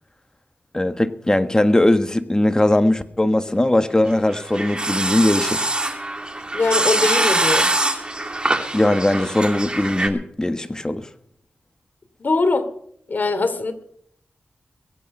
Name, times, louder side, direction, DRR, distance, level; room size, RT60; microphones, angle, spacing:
voice 1, 0.7-5.7 8.7-11.1, left 1 dB, 20° left, 1.4 m, -19 dB
sound 1, 4.1-10.1, right 2 dB, 25° right, 2.3 m, -23 dB
voice 2, 6.5-7.7 12.2-12.7 13.1-13.7, left 3 dB, 55° left, 2.8 m, -21 dB
22.5 x 8.7 x 5.6 m
cardioid pair, 60°, 4 cm